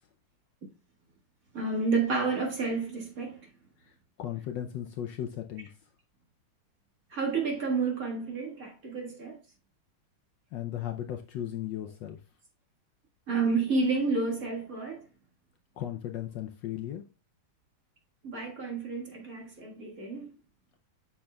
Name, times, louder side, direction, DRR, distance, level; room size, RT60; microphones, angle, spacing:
voice 1, 1.5-3.4 7.1-9.4 13.3-15.0 18.2-20.3, right 4 dB, 45° right, 2.0 m, -30 dB
voice 2, 3.8-5.7 10.5-12.2 15.8-17.0, left 11 dB, 70° left, 1.1 m, -36 dB
8.6 x 5.8 x 2.3 m
omnidirectional pair, 2.3 m